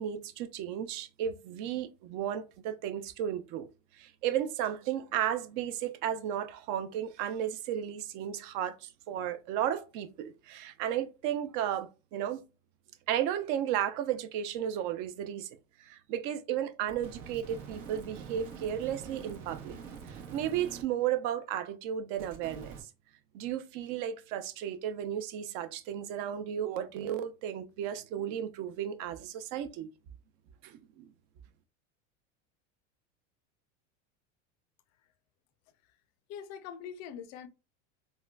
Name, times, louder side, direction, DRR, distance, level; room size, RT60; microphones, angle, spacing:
voice 1, 0.0-3.7 4.0-12.4 13.1-15.5 15.9-19.8 20.3-22.7 23.3-29.9 30.6-31.1, right 10 dB, 55° right, 0.5 m, -34 dB
sound 1, 16.9-20.8 22.2-22.8, right 6 dB, 80° right, 1.0 m, -45 dB
voice 2, 36.3-37.5, left 8 dB, 45° left, 0.5 m, -43 dB
3.7 x 2.2 x 2.2 m
supercardioid pair, 110°, 37 cm